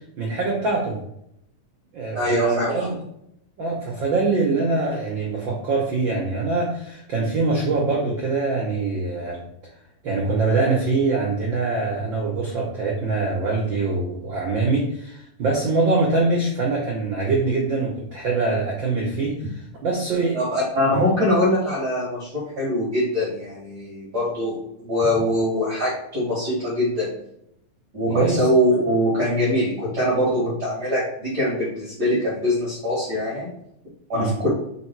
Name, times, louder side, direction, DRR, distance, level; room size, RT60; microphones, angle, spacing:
voice 1, 0.2-1.0 1.9-3.0 3.6-9.4 10.0-20.4 20.9-21.1 28.1-28.5 34.1-34.3, right 3 dB, 85° right, -2 dB, 1.0 m, -23 dB
voice 2, 2.1-2.9 20.3-24.6 24.8-27.1 27.9-33.5 34.1-34.5, left 1 dB, 35° right, -7 dB, 1.8 m, -23 dB
5.2 x 4.0 x 4.5 m, 0.76 s
omnidirectional pair, 3.8 m